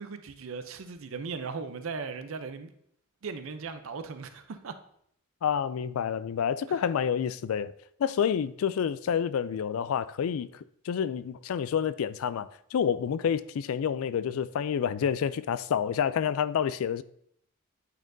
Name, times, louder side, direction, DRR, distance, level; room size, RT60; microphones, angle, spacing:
voice 1, 0.0-2.7 3.2-4.7 6.7-6.8, right 5 dB, 75° right, 0.5 m, -38 dB
voice 2, 5.4-7.7 8.0-17.0, left 8 dB, 80° left, 0.3 m, -28 dB
9.1 x 4.2 x 2.6 m
head